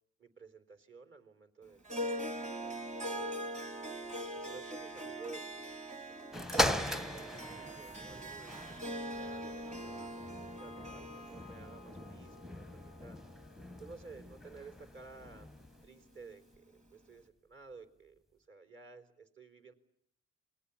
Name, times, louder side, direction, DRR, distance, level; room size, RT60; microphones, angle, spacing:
voice 1, 0.2-3.4 4.3-5.5 6.1-8.6 9.0-13.2 13.8-15.5 15.8-19.7, right 4 dB, 40° right, 8 dB, 4.1 m, -53 dB
Harp, 1.9-14.4, equal, 25° right, 3.4 m, -42 dB
sound 1, 6.3-15.9 16.5-16.6, equal, ahead, 1.0 m, -39 dB
28.0 x 22.0 x 8.5 m, 0.72 s
cardioid pair, 90°, 30 cm